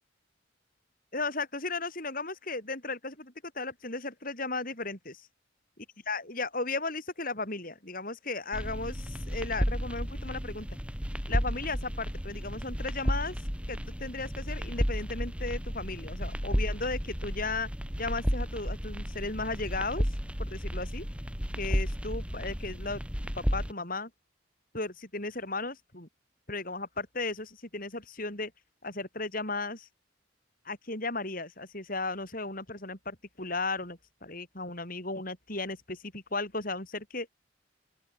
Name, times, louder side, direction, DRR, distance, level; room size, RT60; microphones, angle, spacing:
voice 1, 1.1-5.3 6.1-10.7 11.3-13.4 13.7-17.7 18.0-21.0 21.6-23.0 23.4-24.1 24.7-26.1 26.5-28.5 28.8-29.9 30.7-37.3, left 3 dB, 45° left, 7.4 m, -35 dB
sound 1, 8.5-23.7, equal, 5° right, 5.3 m, -33 dB
open air
head